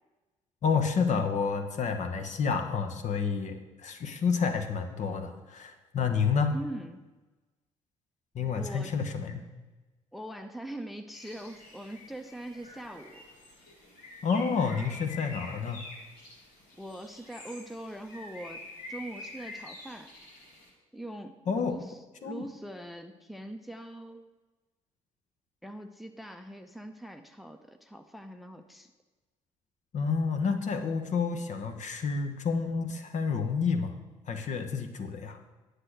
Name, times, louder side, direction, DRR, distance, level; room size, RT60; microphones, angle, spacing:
voice 1, 0.6-6.5 8.3-9.5 14.2-15.8 21.5-21.8 22.2-22.5 29.9-33.9 34.3-35.4, left 5 dB, 45° left, 7 dB, 1.1 m, -29 dB
voice 2, 6.5-7.0 8.6-9.0 10.1-13.3 16.8-20.1 20.9-24.3 25.6-28.9, right 1 dB, ahead, 7 dB, 0.7 m, -42 dB
Bird, 11.1-20.7, left 2 dB, 65° left, 2.5 m, -47 dB
9.9 x 6.7 x 6.2 m, 1.2 s
figure-of-eight pair, 45°, 17 cm